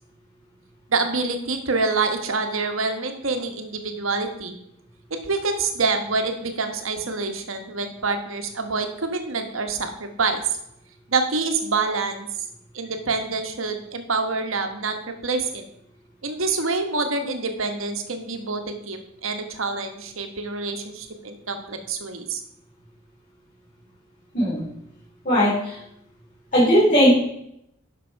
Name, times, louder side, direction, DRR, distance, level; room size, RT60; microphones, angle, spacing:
voice 1, 0.9-4.5 5.2-10.4 11.1-12.3 12.7-15.6 16.2-22.4, right 4 dB, 75° right, 5 dB, 1.3 m, -26 dB
voice 2, 25.3-25.8 26.5-27.2, equal, 40° left, -8 dB, 3.4 m, -17 dB
11.0 x 6.0 x 4.6 m, 0.77 s
head